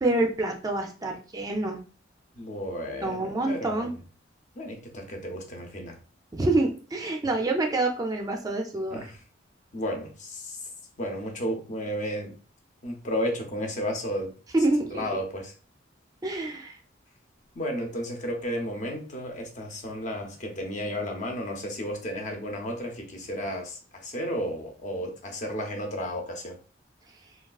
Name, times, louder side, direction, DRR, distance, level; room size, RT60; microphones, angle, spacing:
voice 1, 0.0-1.8 3.0-3.9 6.3-9.1 14.5-15.0 16.2-16.8, right 2 dB, 20° right, 2 dB, 0.3 m, -27 dB
voice 2, 2.4-3.8 4.6-6.0 8.9-9.2 9.7-10.6 11.0-12.3 12.8-14.3 14.9-15.5 17.6-26.6, equal, 40° left, 3 dB, 0.7 m, -33 dB
3.4 x 2.3 x 2.3 m, 0.38 s
head